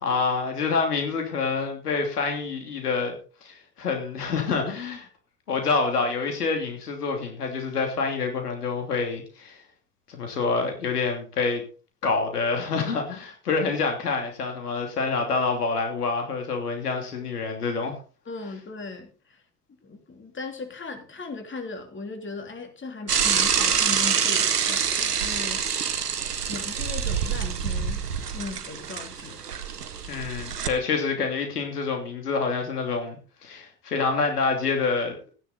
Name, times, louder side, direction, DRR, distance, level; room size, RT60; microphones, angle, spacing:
voice 1, 0.0-5.1 5.5-9.6 10.1-11.6 12.0-18.0 30.1-35.2, left 4 dB, 85° left, 4 dB, 2.9 m, -27 dB
voice 2, 18.3-19.4 19.8-24.8 25.2-25.6 26.5-28.0 28.3-29.4, left 3 dB, 25° left, 5 dB, 3.2 m, -37 dB
Bicycle / Mechanisms, 23.1-30.7, right 7 dB, 90° right, 1.1 m, -26 dB
15.0 x 10.0 x 4.0 m, 0.37 s
figure-of-eight pair, 65°, 45 cm